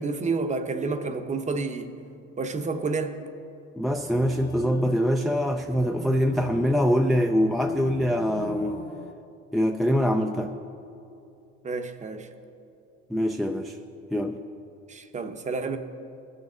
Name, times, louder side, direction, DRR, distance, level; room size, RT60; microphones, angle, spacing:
voice 1, 0.0-1.9 2.4-3.2 11.6-12.3 14.9-15.8, right 4 dB, 25° right, 8 dB, 0.7 m, -29 dB
sound 1, 3.8-9.1, left 4 dB, 35° left, 0.8 m, -41 dB
voice 2, 3.8-8.8 9.5-10.5 13.1-13.8 14.1-14.4, equal, ahead, 3 dB, 0.3 m, -24 dB
18.0 x 6.5 x 3.7 m, 2.6 s
supercardioid pair, 100°, 30 cm